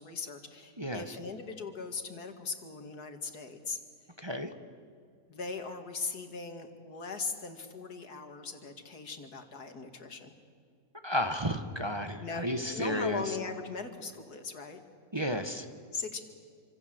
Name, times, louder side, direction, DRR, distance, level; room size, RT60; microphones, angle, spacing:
voice 1, 0.0-3.8 5.3-10.3 12.2-12.5 12.7-14.8 15.9-16.2, left 4 dB, 85° left, 6 dB, 2.7 m, -39 dB
voice 2, 11.0-13.2 15.1-15.6, equal, 20° right, 7 dB, 1.2 m, -32 dB
27.5 x 26.0 x 7.9 m, 2.2 s
omnidirectional pair, 1.6 m